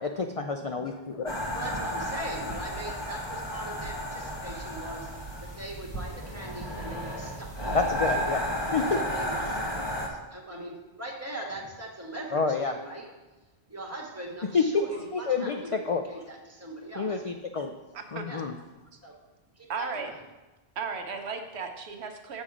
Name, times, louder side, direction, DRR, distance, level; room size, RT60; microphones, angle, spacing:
voice 1, 0.0-1.3 7.7-8.5 8.7-9.0 9.4-9.6 12.3-12.8 14.5-16.0 17.0-17.7 18.1-18.5, left 4 dB, 55° left, 5 dB, 0.4 m, -28 dB
sound 1, 1.3-10.1, equal, 25° left, 1.1 m, -33 dB
voice 2, 1.5-5.1 5.4-7.8 8.8-9.4 10.3-13.1 13.7-17.2 18.3-18.4 19.0-19.1 19.6-20.2, right 1 dB, 15° right, -1 dB, 1.3 m, -41 dB
voice 3, 17.9-18.3 19.7-20.1 20.8-22.4, right 5 dB, 75° right, 5 dB, 1.1 m, -35 dB
7.5 x 5.3 x 4.9 m, 1.1 s
omnidirectional pair, 1.1 m